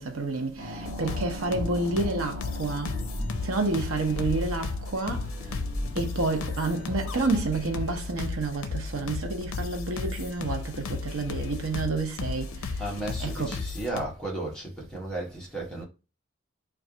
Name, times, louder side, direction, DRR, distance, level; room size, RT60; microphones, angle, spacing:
voice 1, 0.0-3.0 3.4-5.3 5.9-12.8 13.2-13.6, right 3 dB, 85° right, 0.8 m, -29 dB
sound 1, 0.6-9.4, equal, 45° right, 1.2 m, -39 dB
sound 2, 0.8-14.0, left 4 dB, 85° left, 0.5 m, -34 dB
voice 2, 12.8-15.8, right 1 dB, 5° left, 1.0 m, -34 dB
3.2 x 2.4 x 3.7 m
head